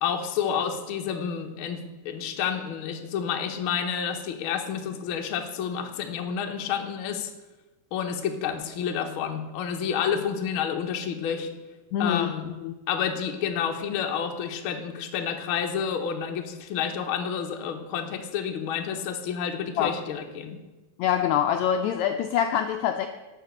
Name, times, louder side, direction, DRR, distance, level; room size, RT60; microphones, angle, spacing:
voice 1, 0.0-7.3 7.9-11.5 12.0-12.5 12.9-20.6, left 7 dB, 65° left, 4 dB, 1.3 m, -29 dB
voice 2, 11.9-12.3 12.6-12.8 19.8-19.9 21.0-23.1, left 9 dB, 85° left, 6 dB, 1.6 m, -25 dB
12.0 x 5.8 x 7.7 m, 1.2 s
omnidirectional pair, 3.8 m